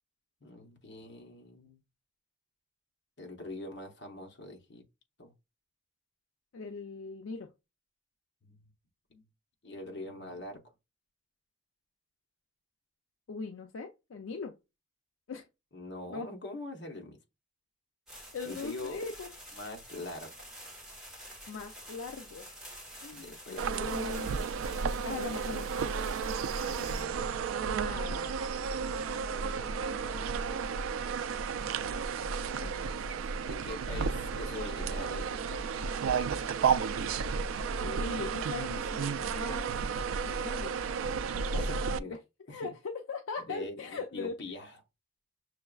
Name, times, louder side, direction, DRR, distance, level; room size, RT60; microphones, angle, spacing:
voice 1, 0.4-1.8 3.2-4.8 5.2-5.3 8.4-8.7 9.1-9.3 9.6-10.6 15.7-17.2 18.4-19.0 19.5-20.3 23.1-23.9 26.7-27.3 29.3-30.2 32.5-33.0 33.3-35.9 41.6-42.2 42.5-42.7 43.4-44.8, left 2 dB, 60° left, 0.9 m, -44 dB
voice 2, 6.5-7.5 13.3-14.5 15.3-15.5 16.1-16.3 18.3-19.3 21.5-22.5 23.0-24.3 25.0-25.7 27.8-28.5 37.8-39.7 40.4-40.8 41.0-41.6 42.5-44.3, left 4 dB, 85° left, 0.4 m, -40 dB
sound 1, 18.1-27.0, equal, 5° right, 1.2 m, -48 dB
sound 2, 23.6-42.0, right 5 dB, 85° right, 0.3 m, -32 dB
6.3 x 2.3 x 2.3 m
head